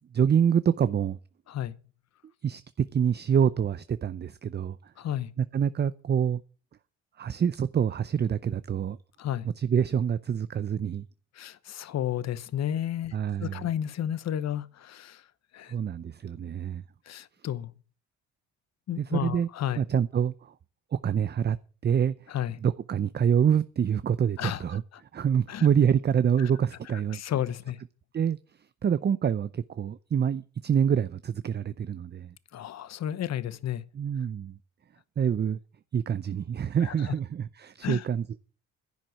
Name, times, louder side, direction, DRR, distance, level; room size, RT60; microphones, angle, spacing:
voice 1, 0.1-1.2 2.4-4.8 5.4-6.4 7.2-9.0 9.6-11.0 13.1-13.6 15.7-16.8 19.0-19.5 19.8-20.5 20.9-21.6 21.8-22.1 22.6-24.8 25.1-27.2 28.1-28.4 28.8-32.3 33.9-34.6 35.2-35.6 35.9-38.2, right 8 dB, 35° right, 0.6 m, -26 dB
voice 2, 5.0-5.3 9.2-9.5 11.4-15.2 15.5-15.7 17.1-17.7 18.9-19.8 22.3-22.6 24.4-24.6 24.9-25.0 25.5-25.7 26.4-26.5 26.9-27.8 32.5-33.8 36.8-37.1 37.8-38.0, left 11 dB, 60° left, 1.0 m, -32 dB
11.0 x 7.6 x 9.2 m
cardioid pair, 90°, 30 cm